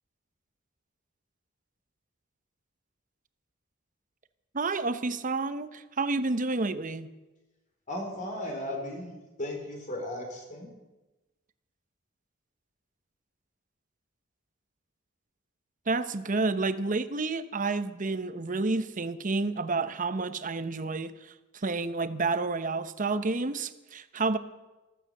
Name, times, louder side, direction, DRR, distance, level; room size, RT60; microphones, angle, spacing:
voice 1, 4.5-7.1 15.9-24.4, right 3 dB, 40° right, 12 dB, 0.8 m, -30 dB
voice 2, 7.9-9.1 9.4-10.7, left 1 dB, 40° left, 2 dB, 4.0 m, -35 dB
14.5 x 14.5 x 6.5 m, 1.1 s
head